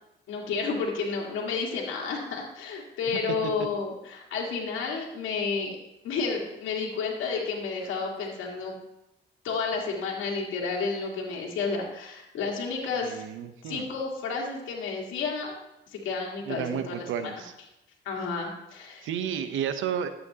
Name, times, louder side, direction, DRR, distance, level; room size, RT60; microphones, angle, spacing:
voice 1, 0.3-5.8 6.0-8.8 9.4-13.2 13.7-15.6 15.9-17.3 18.1-19.1, left 4 dB, 80° left, -1 dB, 1.8 m, -31 dB
voice 2, 13.1-13.9 16.5-17.5 19.0-20.1, right 8 dB, 80° right, 9 dB, 0.8 m, -32 dB
12.0 x 8.0 x 2.8 m, 0.91 s
cardioid pair, 90°, 20 cm